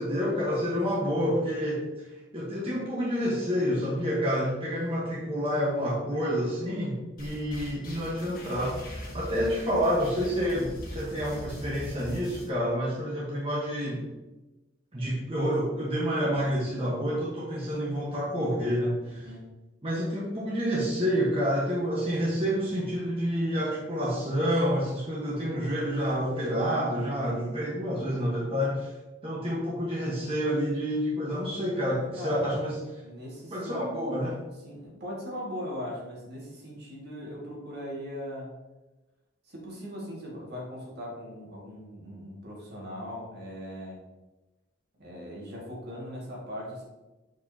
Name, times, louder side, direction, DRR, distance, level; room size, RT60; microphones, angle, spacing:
voice 1, 0.0-1.9 2.3-14.1 14.9-19.3 19.8-28.9 29.2-32.7 33.5-34.4, equal, 30° right, -6 dB, 1.2 m, -28 dB
sound 1, 7.2-12.5, equal, 50° left, 1.5 m, -41 dB
voice 2, 19.1-19.4 32.1-32.5 33.0-33.8 34.6-38.5 39.5-44.0 45.0-46.8, equal, 55° right, -3 dB, 2.0 m, -39 dB
6.8 x 5.3 x 2.8 m, 1.1 s
head